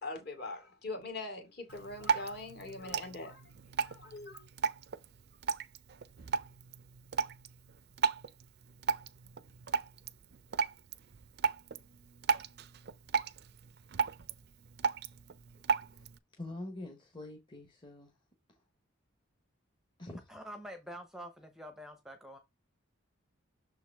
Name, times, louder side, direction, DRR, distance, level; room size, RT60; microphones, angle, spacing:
voice 1, 0.0-3.5 3.8-4.4, left 2 dB, 50° left, 2.1 m, -42 dB
Drip, 1.7-16.2, right 5 dB, 50° right, 0.4 m, -36 dB
voice 2, 15.7-16.1 16.3-18.1 18.5-18.6 20.0-20.3, left 2 dB, 20° left, 1.0 m, -45 dB
voice 3, 20.3-22.4, equal, ahead, 0.7 m, -46 dB
6.5 x 4.6 x 3.4 m
head